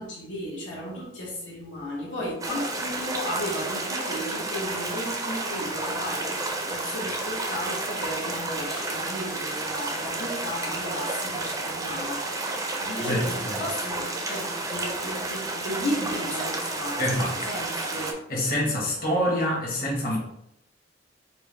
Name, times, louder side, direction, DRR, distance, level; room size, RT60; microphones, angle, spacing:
voice 1, 0.0-6.3 6.7-12.3 12.8-13.3 13.6-17.2 17.5-18.1 20.1-20.2, left 1 dB, 80° left, -5 dB, 1.1 m, -34 dB
sound 1, 2.4-18.1, right 2 dB, 20° right, 0.5 m, -31 dB
voice 2, 13.0-13.6 17.0-17.4 18.3-20.2, equal, 50° left, -4 dB, 1.2 m, -26 dB
4.4 x 2.1 x 3.2 m, 0.78 s
head